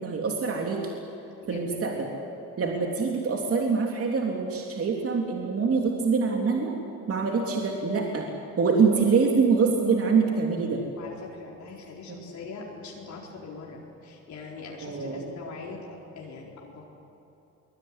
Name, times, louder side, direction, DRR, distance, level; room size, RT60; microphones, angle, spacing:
voice 1, 0.0-0.8 1.5-1.9 2.6-6.7 7.1-8.2 8.6-10.8 12.1-12.2 14.8-15.3, right 5 dB, 50° right, 0 dB, 3.3 m, -25 dB
voice 2, 1.5-1.8 11.0-15.8 16.1-16.8, left 4 dB, 70° left, -2 dB, 4.4 m, -42 dB
23.0 x 21.5 x 10.0 m, 3.0 s
cardioid pair, 90°, 30 cm